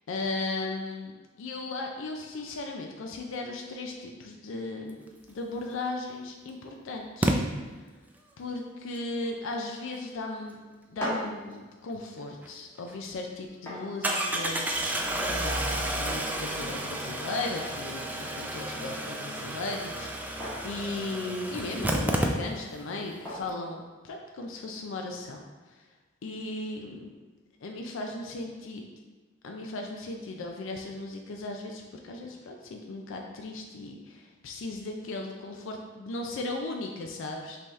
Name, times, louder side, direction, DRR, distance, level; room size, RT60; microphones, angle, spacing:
voice 1, 0.1-1.1 1.4-7.3 8.4-10.6 10.9-25.4 26.2-27.1 27.6-28.8 29.4-37.6, left 2 dB, 65° left, 2 dB, 0.4 m, -36 dB
Engine starting, 5.7-5.8 7.2-7.4 12.4-12.5 12.9-13.0 14.0-22.8 23.1-23.2 23.4-23.5, right 1 dB, 10° right, 0.3 m, -31 dB
sound 1, 10.7-24.6, equal, 10° left, 1.4 m, -44 dB
5.4 x 2.8 x 3.1 m, 1.3 s
head